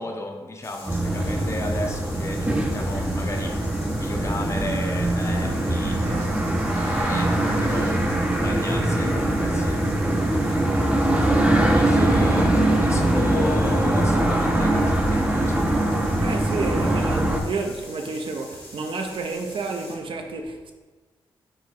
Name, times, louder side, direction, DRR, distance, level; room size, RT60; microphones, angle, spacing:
voice 1, 0.0-3.6 4.0-6.0 7.0-9.8 10.7-15.7, left 2 dB, 30° left, 0.7 m, -34 dB
sound 1, 0.6-20.0, left 2 dB, 70° left, 1.4 m, -44 dB
sound 2, 0.9-17.4, right 1 dB, 10° right, 0.6 m, -22 dB
sound 3, 5.2-13.2, right 1 dB, 80° right, 1.0 m, -41 dB
voice 2, 6.0-6.4 16.2-20.7, right 3 dB, 60° right, 0.6 m, -30 dB
3.9 x 2.7 x 4.8 m
cardioid pair, 65°, 10 cm